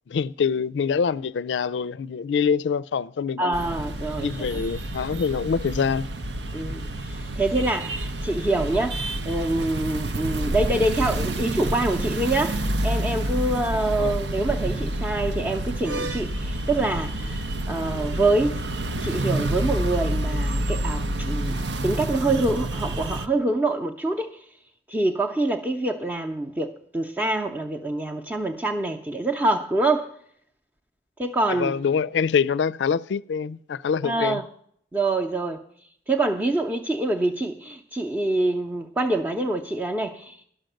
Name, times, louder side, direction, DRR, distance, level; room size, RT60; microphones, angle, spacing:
voice 1, 0.1-3.5 4.2-6.1 14.0-14.1 31.5-34.4, left 6 dB, 90° left, 0.4 m, -25 dB
voice 2, 3.4-4.3 6.5-18.6 19.0-24.4 24.9-30.1 31.2-31.7 34.0-34.5 34.9-35.6 36.1-40.4, right 2 dB, 10° right, 0.6 m, -25 dB
sound 1, 3.5-23.3, right 1 dB, 85° right, 0.8 m, -28 dB
12.0 x 6.4 x 9.0 m
head